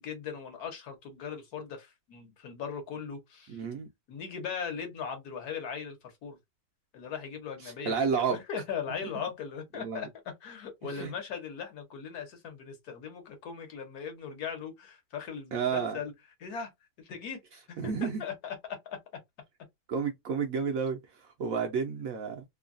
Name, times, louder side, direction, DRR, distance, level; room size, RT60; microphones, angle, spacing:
voice 1, 0.0-3.6 4.1-6.4 6.9-10.1 10.4-16.1 16.4-16.7 17.0-17.4 17.7-19.0, left 6 dB, 65° left, 1.3 m, -39 dB
voice 2, 3.5-3.9 7.6-8.4 9.8-10.1 10.9-11.1 15.5-16.0 17.8-18.2 19.9-22.4, right 6 dB, 70° right, 0.9 m, -31 dB
3.1 x 2.2 x 2.5 m
omnidirectional pair, 1.8 m